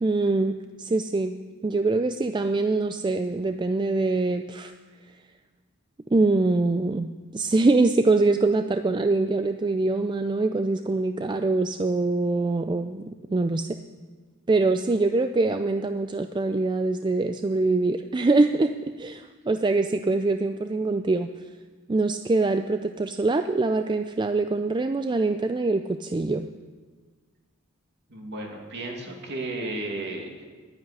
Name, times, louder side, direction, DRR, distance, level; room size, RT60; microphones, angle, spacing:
voice 1, 0.0-1.3 1.6-4.7 6.1-13.7 14.5-18.7 19.0-21.3 21.9-26.5, right 3 dB, 20° right, 8 dB, 0.4 m, -24 dB
voice 2, 28.1-30.4, right 2 dB, 55° right, 1 dB, 2.4 m, -34 dB
10.5 x 9.5 x 10.0 m, 1.4 s
head